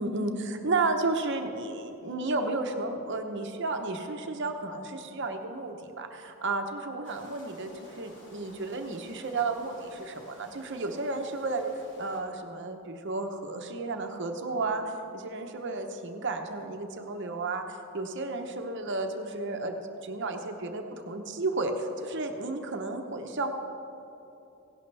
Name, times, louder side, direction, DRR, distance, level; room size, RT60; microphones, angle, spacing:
voice 1, 0.0-11.7 12.0-14.8 15.1-23.5, right 3 dB, 55° right, 5 dB, 0.8 m, -32 dB
sound 1, 7.0-12.2, left 1 dB, 55° left, 2.4 m, -52 dB
16.5 x 11.5 x 3.3 m, 2.9 s
head